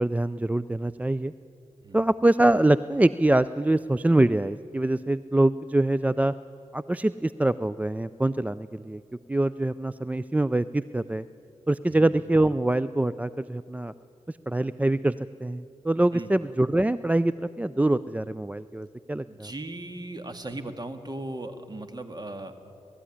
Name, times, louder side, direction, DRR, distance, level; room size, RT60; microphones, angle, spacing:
voice 1, 0.0-1.3 1.9-6.3 6.7-9.0 9.3-11.2 11.7-13.9 14.3-15.1 15.4-19.5, right 1 dB, 15° right, 16 dB, 0.4 m, -24 dB
voice 2, 11.9-12.2 16.1-16.3 19.3-22.5, right 2 dB, 35° right, 8 dB, 1.9 m, -38 dB
19.0 x 14.0 x 10.0 m, 2.7 s
cardioid pair, 50°, 12 cm